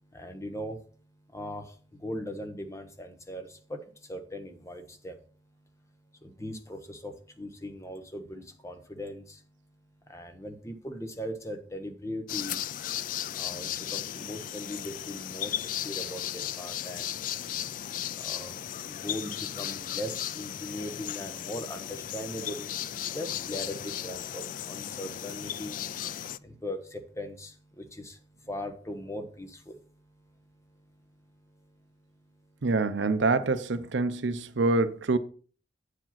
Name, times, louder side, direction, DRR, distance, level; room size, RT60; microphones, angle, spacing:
voice 1, 0.1-0.8 1.3-1.6 2.0-3.8 4.1-5.1 6.4-9.2 10.1-12.6 13.4-15.5 15.8-16.2 16.6-17.1 18.2-18.5 18.9-19.3 19.6-22.7 23.1-25.8 26.4-27.5 27.8-28.1 28.5-29.6, left 1 dB, 15° left, 1.0 m, -39 dB
sound 1, 12.3-26.4, left 11 dB, 45° left, 0.3 m, -36 dB
voice 2, 32.6-35.2, right 3 dB, 75° right, 0.6 m, -26 dB
8.7 x 5.0 x 5.8 m
head